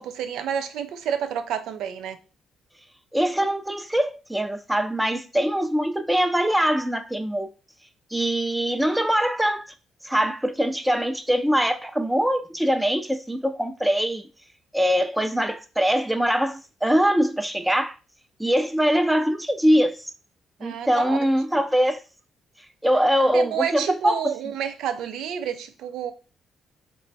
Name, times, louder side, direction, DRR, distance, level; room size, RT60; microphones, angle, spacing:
voice 1, 0.0-2.2 20.6-21.2 21.5-21.6 23.3-26.1, right 8 dB, 85° right, 0.4 m, -29 dB
voice 2, 3.1-7.5 8.1-9.7 10.0-14.3 14.7-18.0 18.4-20.1 20.6-22.0 22.8-24.3, equal, 5° right, 0.4 m, -23 dB
3.1 x 2.2 x 3.9 m
cardioid pair, 90°, 0 cm